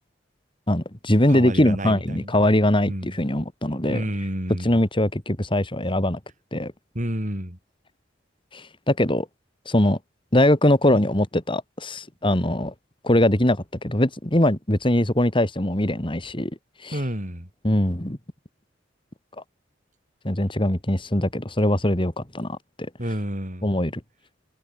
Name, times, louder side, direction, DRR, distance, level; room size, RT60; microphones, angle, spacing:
voice 1, 0.7-4.0 4.6-6.2 6.5-6.7 8.5-9.3 9.7-10.0 10.3-12.7 13.0-16.5 16.8-17.0 17.6-18.2 20.2-22.6 23.6-23.9, left 1 dB, 25° left, 2.7 m, -21 dB
voice 2, 1.3-2.4 2.9-3.2 3.9-4.7 6.9-7.6 16.9-17.5 23.0-23.8, equal, 40° right, 6.1 m, -30 dB
head